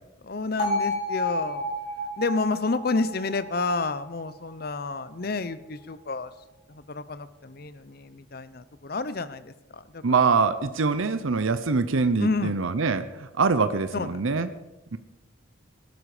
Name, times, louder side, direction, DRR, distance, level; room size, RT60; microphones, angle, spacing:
voice 1, 0.2-1.7 2.2-6.3 6.7-10.2 12.2-12.6 13.9-14.2, left 3 dB, 45° left, 14 dB, 0.7 m, -30 dB
Bell, 0.6-4.7, left 1 dB, 30° left, 5.4 m, -31 dB
voice 2, 10.0-14.5 14.9-15.0, right 4 dB, 80° right, 11 dB, 0.7 m, -24 dB
17.5 x 12.5 x 5.0 m, 0.99 s
head